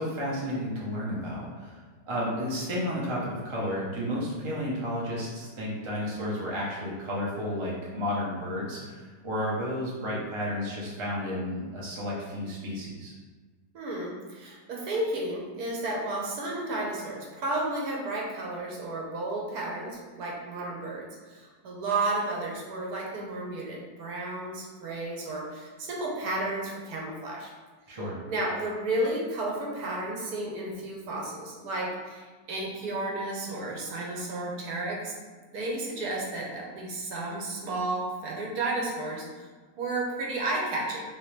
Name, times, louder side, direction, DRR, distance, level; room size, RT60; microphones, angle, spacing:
voice 1, 0.0-13.1 27.9-28.2, equal, 35° right, -5 dB, 0.5 m, -32 dB
voice 2, 13.7-27.5 28.3-35.1 35.5-39.5 39.8-41.0, right 2 dB, 70° right, -2 dB, 1.2 m, -32 dB
3.3 x 2.9 x 3.2 m, 1.4 s
omnidirectional pair, 1.8 m